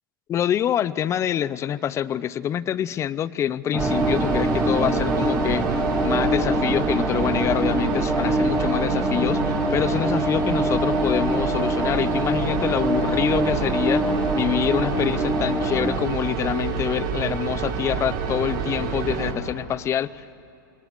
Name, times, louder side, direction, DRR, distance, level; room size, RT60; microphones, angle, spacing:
voice 1, 0.3-20.3, left 10 dB, 25° left, 18 dB, 0.7 m, -26 dB
sound 1, 3.7-16.0, equal, ahead, 1.6 m, -25 dB
sound 2, 3.8-19.3, right 6 dB, 40° right, 4.4 m, -28 dB
27.5 x 21.5 x 9.7 m, 2.6 s
hypercardioid pair, 130°, 12 cm